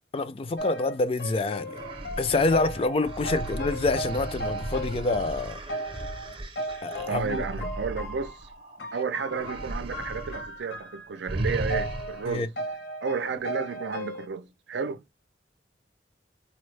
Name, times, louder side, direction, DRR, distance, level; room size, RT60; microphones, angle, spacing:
voice 1, 0.1-1.8 2.2-5.6 6.8-7.7 12.3-12.5, left 3 dB, 30° left, 0.4 m, -27 dB
sound 1, 0.6-5.3 5.7-8.4 8.8-11.3 11.7-12.3 12.6-14.3, right 1 dB, 65° left, 0.7 m, -36 dB
sound 2, 1.6-8.8 9.2-10.5 10.7-10.9 11.3-12.4, right 1 dB, 30° right, 0.6 m, -36 dB
voice 2, 7.1-8.5 8.9-12.5 13.0-15.0, right 5 dB, 85° right, 0.5 m, -32 dB
4.2 x 2.0 x 3.2 m
head